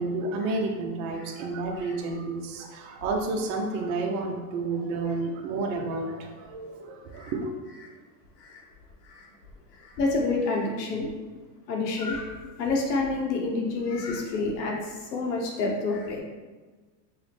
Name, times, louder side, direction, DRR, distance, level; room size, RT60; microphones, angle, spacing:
voice 1, 0.0-7.5, right 3 dB, 50° right, 1 dB, 0.6 m, -30 dB
voice 2, 9.8-11.1 11.7-12.3 12.6-16.2, left 3 dB, 80° left, 0 dB, 1.1 m, -28 dB
5.5 x 2.1 x 3.3 m, 1.3 s
supercardioid pair, 155°, 48 cm